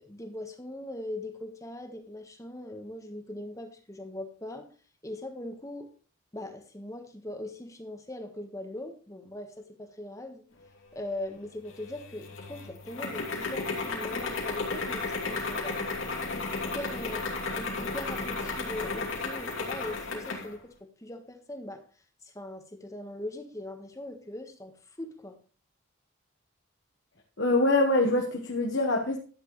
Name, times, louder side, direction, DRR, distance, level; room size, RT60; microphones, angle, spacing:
voice 1, 0.0-4.7 5.0-5.9 6.3-10.4 10.9-15.9 16.3-21.8 22.2-25.4, left 1 dB, 15° left, 5 dB, 1.5 m, -40 dB
sound 1, 11.7-20.5, left 3 dB, 85° left, 2.8 m, -34 dB
voice 2, 27.4-29.2, left 2 dB, 60° left, 1 dB, 1.3 m, -24 dB
12.0 x 9.5 x 3.2 m, 0.39 s
head